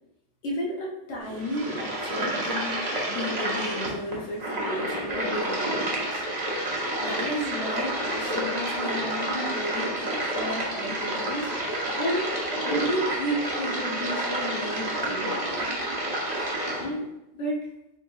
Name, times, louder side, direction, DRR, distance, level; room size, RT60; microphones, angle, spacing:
voice 1, 0.4-2.8 3.1-6.2 7.0-15.8 16.3-16.5 16.8-17.7, equal, 85° left, -4 dB, 1.2 m, -33 dB
sound 1, 1.2-16.8, right 1 dB, 35° right, 0.8 m, -29 dB
4.0 x 3.7 x 2.3 m, 0.91 s
omnidirectional pair, 1.3 m